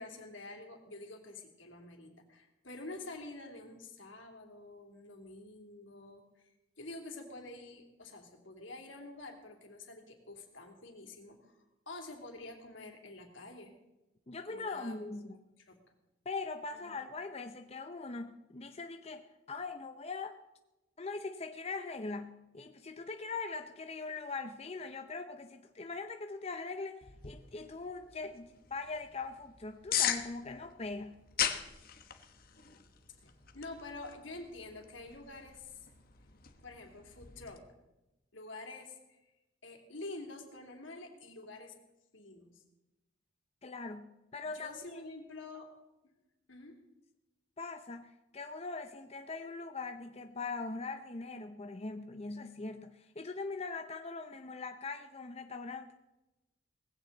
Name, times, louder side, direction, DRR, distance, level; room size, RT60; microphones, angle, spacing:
voice 1, 0.0-6.5 6.8-13.7 14.5-15.2 15.7-15.8 16.7-17.0 33.2-35.9 36.6-37.6 38.3-39.2 39.6-41.7 42.1-42.6 44.5-45.7 46.5-46.8, left 2 dB, 85° left, 3 dB, 3.0 m, -48 dB
voice 2, 14.3-15.4 16.2-20.4 21.0-31.2 43.6-45.0 47.6-55.9, left 3 dB, 35° left, 7 dB, 0.7 m, -41 dB
sound 1, 27.0-37.6, left 9 dB, 50° left, 1.3 m, -40 dB
19.0 x 16.0 x 4.0 m, 0.99 s
head